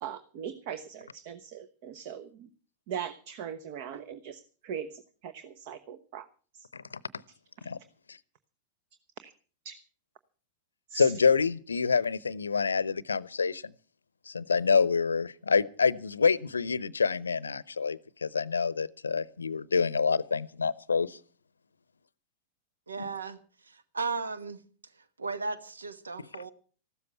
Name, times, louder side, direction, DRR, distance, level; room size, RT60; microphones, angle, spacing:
voice 1, 0.0-2.5 2.9-6.3 6.5-6.7 9.2-9.3 9.6-9.7 10.9-11.1, right 8 dB, 45° right, 1.0 m, -40 dB
voice 2, 10.9-13.7 14.3-21.2, left 5 dB, 75° left, 0.7 m, -27 dB
voice 3, 22.9-24.6 25.2-26.5, right 4 dB, 75° right, 1.1 m, -36 dB
15.0 x 13.0 x 5.7 m
figure-of-eight pair, 90°, 0 cm